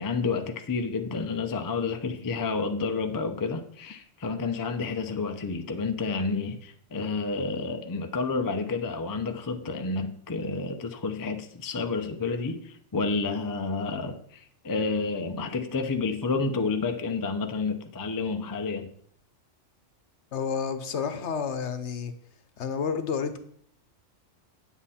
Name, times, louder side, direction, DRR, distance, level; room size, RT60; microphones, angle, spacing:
voice 1, 0.0-18.9, left 4 dB, 25° left, 6 dB, 0.5 m, -30 dB
voice 2, 20.3-22.1 22.6-23.4, left 6 dB, 65° left, 9 dB, 1.1 m, -30 dB
9.0 x 7.6 x 4.2 m, 0.63 s
omnidirectional pair, 1.3 m